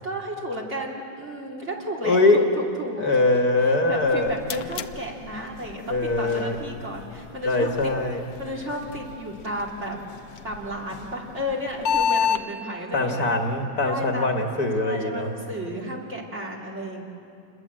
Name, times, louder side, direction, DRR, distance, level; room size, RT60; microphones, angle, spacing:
voice 1, 0.0-3.0 3.9-7.9 8.4-10.0 10.4-13.3 13.9-14.4 14.8-17.0, equal, 35° right, -2 dB, 3.1 m, -33 dB
voice 2, 2.0-2.4 3.0-4.3 5.9-6.6 7.4-8.2 12.9-15.3, left 2 dB, 55° left, 3 dB, 2.0 m, -22 dB
sound 1, 3.9-12.4, left 7 dB, 75° left, 1.5 m, -32 dB
28.0 x 21.5 x 7.6 m, 2.7 s
omnidirectional pair, 2.1 m